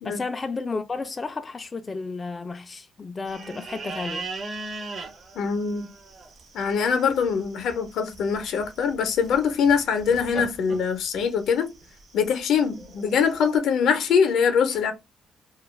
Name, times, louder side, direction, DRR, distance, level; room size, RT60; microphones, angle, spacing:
voice 1, 0.0-4.3, left 4 dB, 30° left, 0.3 m, -32 dB
sound 1, 3.3-13.6, right 3 dB, 50° right, 0.7 m, -40 dB
voice 2, 5.4-5.9 6.5-11.7 12.1-14.9, left 6 dB, 75° left, 0.6 m, -23 dB
2.3 x 2.2 x 3.0 m
cardioid pair, 90°, 0 cm